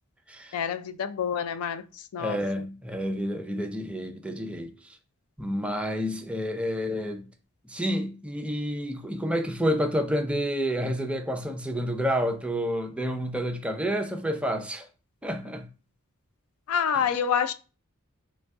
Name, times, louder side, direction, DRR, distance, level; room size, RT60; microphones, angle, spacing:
voice 1, 0.5-1.8 2.1-2.4 16.7-17.5, left 7 dB, 75° left, 0.4 m, -27 dB
voice 2, 2.2-4.7 5.4-7.3 7.7-14.9 15.2-15.7 16.9-17.0, equal, 5° right, 0.5 m, -29 dB
3.8 x 3.1 x 3.5 m
head